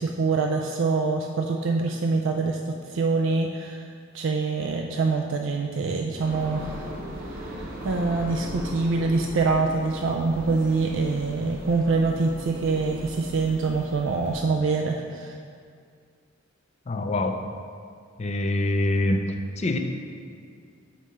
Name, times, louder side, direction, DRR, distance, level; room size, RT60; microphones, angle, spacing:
voice 1, 0.0-3.8 4.1-6.8 7.3-15.3, right 3 dB, 65° right, 1 dB, 0.4 m, -25 dB
sound 1, 6.2-14.4, equal, 45° right, 1.1 m, -38 dB
voice 2, 16.9-17.4 18.2-19.8, left 2 dB, 35° left, 5 dB, 0.5 m, -25 dB
6.2 x 5.3 x 4.3 m, 2.2 s
head